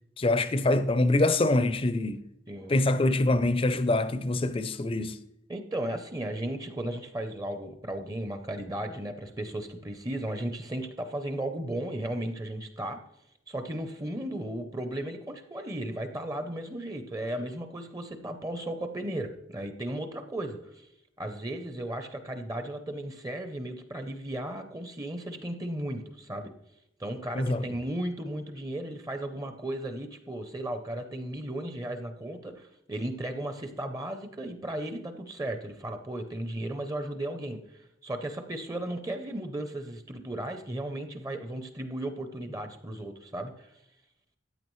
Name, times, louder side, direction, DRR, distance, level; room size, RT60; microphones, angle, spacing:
voice 1, 0.2-2.2 2.7-5.2 27.3-27.6, left 2 dB, 30° left, 0.5 m, -25 dB
voice 2, 2.5-2.8 5.5-13.0 13.5-20.9 21.2-26.5 27.0-43.7, right 1 dB, 20° right, 0.6 m, -35 dB
14.0 x 8.6 x 3.1 m
head